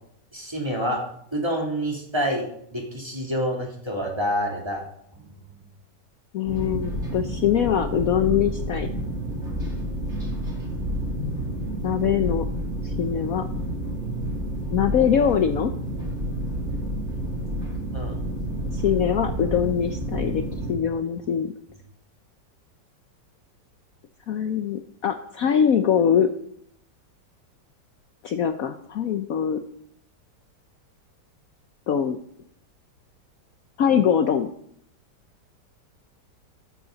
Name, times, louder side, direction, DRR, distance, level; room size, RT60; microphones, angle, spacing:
voice 1, 0.3-1.0 1.3-4.8 5.2-5.3 17.9-18.2, equal, 15° right, -1 dB, 3.2 m, -27 dB
voice 2, 6.3-8.9 11.8-12.5 12.8-13.5 14.7-15.7 18.7-20.4 20.7-21.5 24.3-26.3 28.2-29.6 31.9-32.2 33.8-34.5, left 8 dB, 60° left, 8 dB, 1.1 m, -23 dB
sound 1, 6.5-20.7, right 1 dB, 40° right, 3.4 m, -29 dB
14.5 x 12.0 x 4.0 m, 0.70 s
omnidirectional pair, 1.9 m